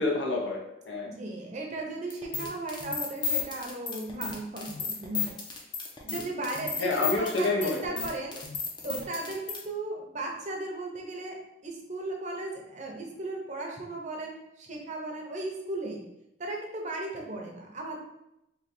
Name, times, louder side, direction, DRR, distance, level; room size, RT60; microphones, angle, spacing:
voice 1, 0.0-1.1 6.8-7.8, left 2 dB, 80° left, -1 dB, 0.8 m, -28 dB
voice 2, 1.0-5.3 6.0-8.4 8.8-11.4 11.6-16.0 16.4-18.0, right 2 dB, 40° right, 0 dB, 0.7 m, -36 dB
sound 1, 2.1-9.6, left 6 dB, 25° left, 0.6 m, -33 dB
3.2 x 2.3 x 4.2 m, 0.86 s
head